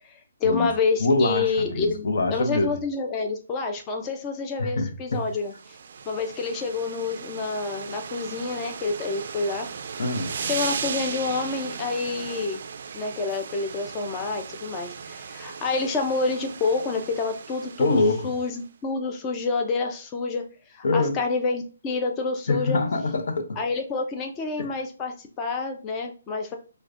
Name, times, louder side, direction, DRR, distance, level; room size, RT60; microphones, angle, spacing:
voice 1, 0.0-5.8 6.1-9.7 10.5-12.6 12.9-18.0 18.2-20.4 20.7-22.8 23.6-26.6, left 4 dB, 20° left, 0.5 m, -28 dB
voice 2, 1.0-2.8 4.6-5.2 10.0-10.3 17.8-18.3 20.8-21.2 22.5-23.6 24.6-24.7, left 2 dB, 65° left, 0.7 m, -24 dB
sound 1, 5.3-18.6, right 6 dB, 55° right, 0.3 m, -37 dB
4.7 x 2.2 x 2.5 m
hypercardioid pair, 155°, 0 cm